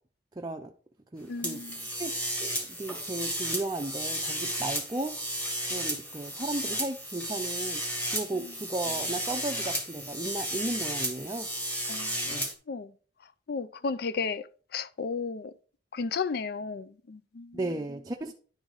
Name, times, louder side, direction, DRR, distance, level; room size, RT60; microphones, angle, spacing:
voice 1, 0.4-0.7 1.1-1.6 1.9-2.1 2.4-2.5 2.8-5.2 5.7-7.8 8.1-11.5 12.2-12.5 17.5-18.3, right 2 dB, 20° right, 0.5 m, -35 dB
voice 2, 1.3-1.8 8.3-8.5 11.9-12.9 13.5-14.5 14.7-15.5 15.9-17.7, left 4 dB, 60° left, 0.4 m, -34 dB
sound 1, 1.4-12.5, equal, 10° left, 1.6 m, -33 dB
10.5 x 4.0 x 4.7 m
head